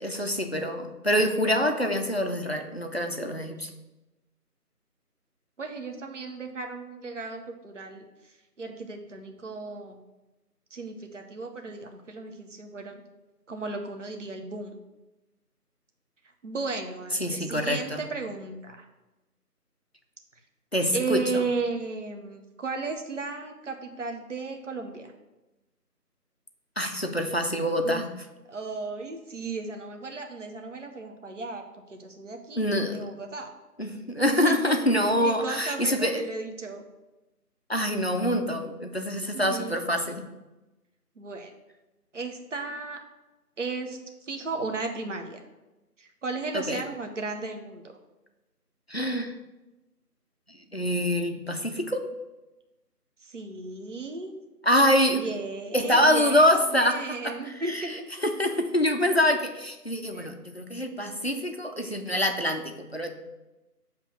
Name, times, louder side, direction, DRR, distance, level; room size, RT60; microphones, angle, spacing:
voice 1, 0.0-3.7 17.2-18.0 20.7-21.4 26.8-28.1 32.6-33.0 33.8-36.2 37.7-40.2 46.5-46.8 48.9-49.3 50.7-52.1 54.6-55.3 55.7-58.0 58.2-63.1, equal, 45° left, 5 dB, 0.5 m, -25 dB
voice 2, 5.6-10.0 10.7-13.0 13.5-14.8 16.4-18.9 20.9-25.1 27.8-28.0 28.5-32.7 32.9-33.5 34.4-34.8 35.2-36.8 39.3-39.8 41.2-41.5 42.1-43.0 43.6-45.4 46.0-47.8 53.2-54.3 55.2-58.1 60.1-60.3, right 3 dB, 50° right, 4 dB, 0.8 m, -35 dB
7.7 x 3.0 x 6.1 m, 1.0 s
figure-of-eight pair, 170°, 48 cm